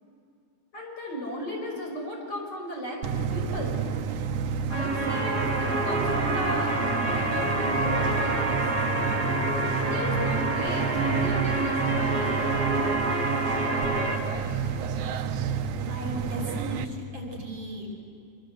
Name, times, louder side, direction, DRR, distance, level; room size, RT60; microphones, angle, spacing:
voice 1, 0.7-3.8 4.7-8.6 9.8-12.6, left 1 dB, 35° left, -1 dB, 5.9 m, -36 dB
sound 1, 3.0-16.8, right 6 dB, 85° right, 2.4 m, -30 dB
sound 2, 4.7-14.2, right 2 dB, 35° right, 3.4 m, -27 dB
voice 2, 15.9-18.0, right 2 dB, 50° right, 1 dB, 5.8 m, -36 dB
26.0 x 25.0 x 8.0 m, 2.4 s
omnidirectional pair, 3.3 m